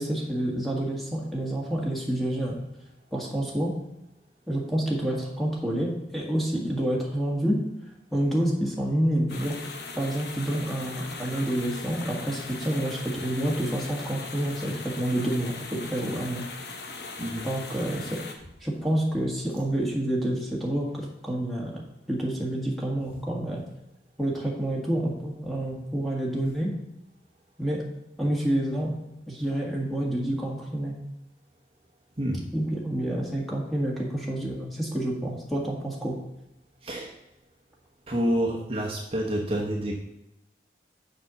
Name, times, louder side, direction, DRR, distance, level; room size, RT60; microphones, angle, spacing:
voice 1, 0.0-2.6 3.1-3.7 4.5-7.6 8.1-9.7 10.0-16.4 17.4-18.2 18.6-23.6 24.2-26.7 27.6-27.8 28.2-28.9 29.3-30.9 32.5-36.1, right 1 dB, ahead, -3 dB, 1.6 m, -28 dB
sound 1, 9.3-18.3, left 3 dB, 70° left, 1.1 m, -39 dB
voice 2, 38.1-40.0, equal, 30° right, -2 dB, 1.0 m, -28 dB
6.7 x 5.3 x 6.9 m, 0.90 s
head